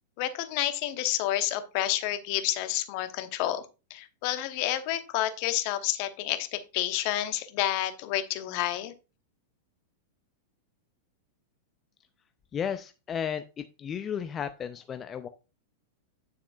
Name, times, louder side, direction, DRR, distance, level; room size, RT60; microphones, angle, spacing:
voice 1, 0.2-8.9, left 13 dB, 45° left, 10 dB, 1.0 m, -30 dB
voice 2, 12.5-15.3, left 8 dB, 25° left, 9 dB, 0.5 m, -34 dB
9.3 x 7.1 x 2.5 m, 0.29 s
figure-of-eight pair, 90°, 0 cm